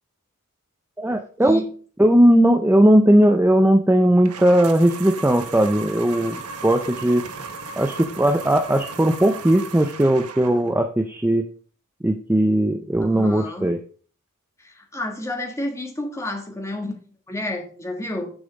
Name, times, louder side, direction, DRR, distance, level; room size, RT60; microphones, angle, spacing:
voice 1, 1.0-1.7 2.0-7.3 7.8-11.5 12.0-13.8, right 1 dB, 10° right, 6 dB, 0.5 m, -18 dB
sound 1, 4.2-10.8, right 5 dB, 90° right, 1.0 m, -36 dB
voice 2, 13.0-13.7 14.6-18.3, left 1 dB, 15° left, 2 dB, 1.5 m, -30 dB
6.9 x 5.4 x 5.1 m, 0.42 s
head